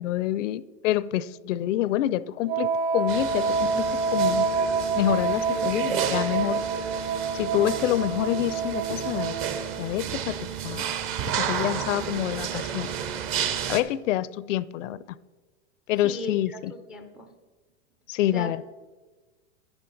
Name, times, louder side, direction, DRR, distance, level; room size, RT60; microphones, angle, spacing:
voice 1, 0.0-4.5 5.0-6.6 7.3-9.3 9.8-10.9 11.3-12.9 13.7-15.0 15.9-16.7 18.1-18.6, left 13 dB, 75° left, 19 dB, 0.5 m, -27 dB
Wind instrument woodwind instrument, 2.5-9.8, right 4 dB, 55° right, 1.5 m, -27 dB
sound 1, 3.1-13.8, right 8 dB, 35° right, 0.8 m, -32 dB
voice 2, 16.0-17.4 18.3-18.5, left 2 dB, 5° right, 6 dB, 0.3 m, -38 dB
10.5 x 9.8 x 3.9 m, 1.2 s
hypercardioid pair, 130°, 38 cm